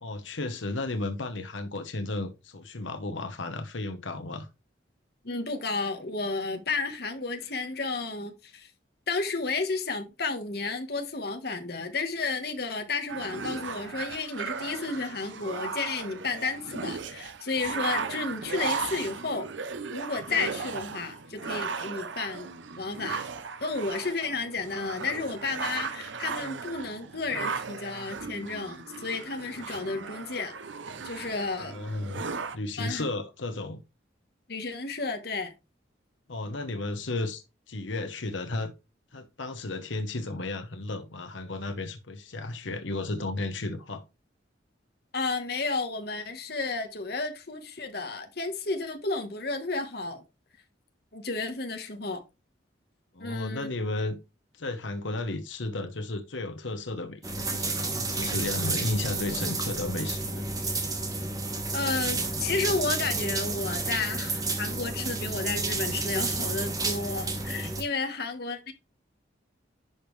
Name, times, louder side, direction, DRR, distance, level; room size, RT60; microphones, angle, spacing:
voice 1, 0.0-4.5 31.6-32.2 32.5-33.8 36.3-38.7 39.1-44.0 53.1-54.2 54.5-60.8, left 2 dB, 85° left, 1.1 m, -33 dB
voice 2, 5.2-8.7 9.1-19.5 19.9-22.5 22.8-23.3 23.6-30.6 31.0-31.8 32.8-33.1 34.5-35.5 45.1-50.2 51.1-52.2 53.2-53.7 61.7-68.7, left 3 dB, 55° left, 1.4 m, -32 dB
sound 1, 13.1-32.6, right 5 dB, 80° right, 0.8 m, -36 dB
sound 2, 57.2-67.8, right 3 dB, 20° right, 1.3 m, -31 dB
11.0 x 5.2 x 3.3 m
head